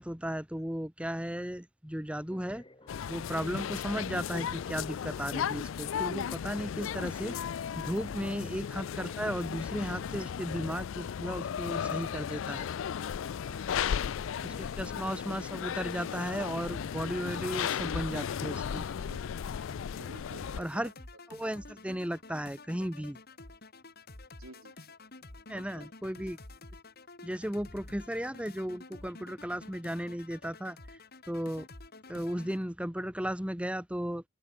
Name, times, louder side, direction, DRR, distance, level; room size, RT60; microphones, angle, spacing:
voice 1, 0.0-2.6 3.1-7.4 7.8-12.7 14.4-18.9 20.6-20.9 21.3-23.2 25.5-26.4 27.2-31.7 32.1-34.2, equal, 5° right, 1.2 m, -35 dB
sound 1, 2.3-10.3, left 2 dB, 25° left, 6.3 m, -57 dB
sound 2, 2.9-20.6, left 8 dB, 65° left, 0.3 m, -35 dB
voice 2, 8.2-8.5 13.4-13.9 14.2-14.7 19.1-19.4 19.9-20.9 21.3-21.6 24.4-25.0 25.5-25.9, right 2 dB, 80° right, 7.3 m, -53 dB
sound 3, 14.1-32.6, left 2 dB, 45° left, 3.0 m, -51 dB
head